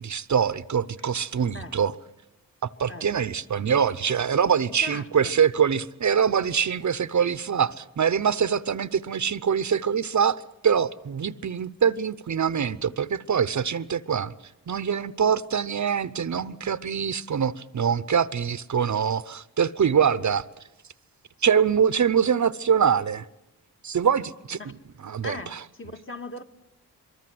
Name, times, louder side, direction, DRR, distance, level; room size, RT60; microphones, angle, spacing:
voice 1, 0.0-1.9 2.6-14.3 14.7-20.5 21.4-23.2 23.8-24.7 25.0-25.6, right 7 dB, 50° right, 0.8 m, -24 dB
voice 2, 4.8-5.3 24.6-24.7 25.2-26.4, left 2 dB, 35° left, 1.7 m, -39 dB
24.0 x 23.0 x 7.8 m
cardioid pair, 85°, 37 cm